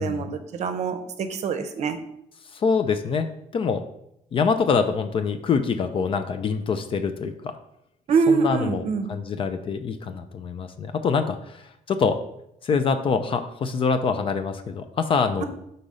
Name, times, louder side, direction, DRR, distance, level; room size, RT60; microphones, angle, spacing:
voice 1, 0.0-2.0 8.1-9.1, right 5 dB, 50° right, 8 dB, 0.7 m, -24 dB
voice 2, 2.5-3.3 3.5-3.8 4.3-7.6 8.3-8.8 9.1-12.2 12.6-15.4, left 5 dB, 40° left, 9 dB, 0.4 m, -25 dB
4.9 x 4.0 x 5.4 m, 0.78 s
cardioid pair, 150°, 14 cm